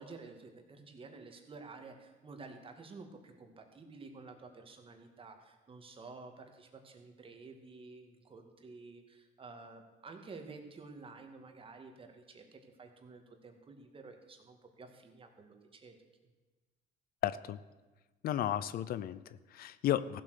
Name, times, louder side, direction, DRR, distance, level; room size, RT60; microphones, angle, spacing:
voice 1, 0.0-16.0, right 3 dB, 30° right, 5 dB, 2.0 m, -51 dB
voice 2, 17.2-17.6 18.2-20.2, left 11 dB, 60° left, 16 dB, 0.5 m, -34 dB
15.0 x 7.8 x 6.6 m, 1.2 s
cardioid pair, 110°, 17 cm